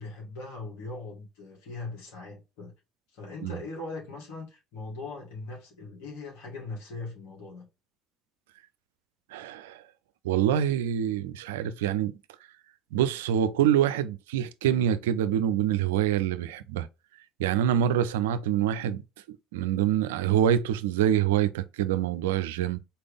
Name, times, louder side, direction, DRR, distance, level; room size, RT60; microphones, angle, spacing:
voice 1, 0.0-2.7 3.1-7.7, left 3 dB, 70° left, 2.7 m, -40 dB
voice 2, 9.3-9.8 10.2-12.2 12.9-16.9 17.4-19.0 19.3-22.8, right 10 dB, 75° right, 0.4 m, -26 dB
4.3 x 3.4 x 3.4 m
hypercardioid pair, 60°, 0 cm